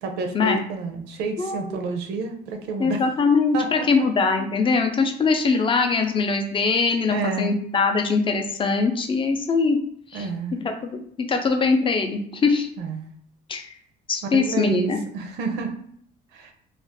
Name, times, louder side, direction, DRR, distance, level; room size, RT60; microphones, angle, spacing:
voice 1, 0.0-3.0 3.5-4.1 7.1-7.5 10.1-10.6 12.8-13.1 14.2-15.9 16.3-16.5, right 3 dB, 80° right, 5 dB, 0.5 m, -29 dB
voice 2, 1.4-1.8 2.8-9.8 10.1-10.3 10.6-12.7 13.5-13.7 14.1-15.0, left 4 dB, 30° left, 4 dB, 0.5 m, -22 dB
2.4 x 2.3 x 3.5 m, 0.63 s
cardioid pair, 110°, 17 cm